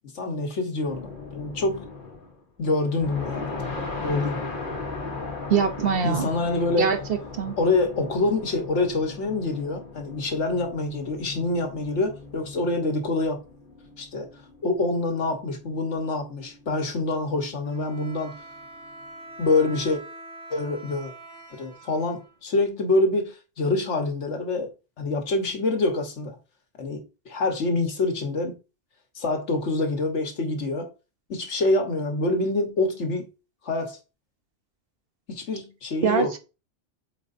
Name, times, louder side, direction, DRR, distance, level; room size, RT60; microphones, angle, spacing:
voice 1, 0.1-1.9 2.6-3.5 4.0-4.4 6.0-6.9 7.6-13.4 14.0-14.3 14.6-18.4 19.4-20.0 20.5-21.1 21.5-26.4 26.8-28.6 29.1-30.9 31.3-33.3 33.6-34.0 35.3-36.3, left 2 dB, 90° left, 1.6 m, -26 dB
sound 1, 0.8-2.4 2.8-19.2, left 3 dB, 50° left, 1.3 m, -38 dB
voice 2, 5.5-6.3 6.8-7.5 36.0-36.4, right 6 dB, 60° right, 1.0 m, -23 dB
Bowed string instrument, 17.6-22.7, right 2 dB, 35° right, 1.8 m, -44 dB
7.9 x 4.5 x 2.6 m
omnidirectional pair, 1.2 m